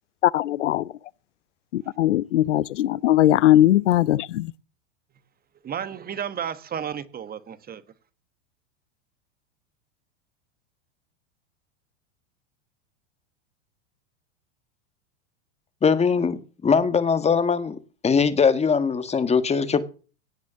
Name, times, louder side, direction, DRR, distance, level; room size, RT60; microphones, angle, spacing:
voice 1, 0.2-0.9 1.7-4.5, left 13 dB, 90° left, 0.6 m, -20 dB
voice 2, 5.6-7.8, right 8 dB, 25° right, 1.4 m, -32 dB
voice 3, 15.8-19.8, left 5 dB, 20° left, 1.6 m, -21 dB
17.5 x 6.2 x 7.3 m
hypercardioid pair, 105°, 35 cm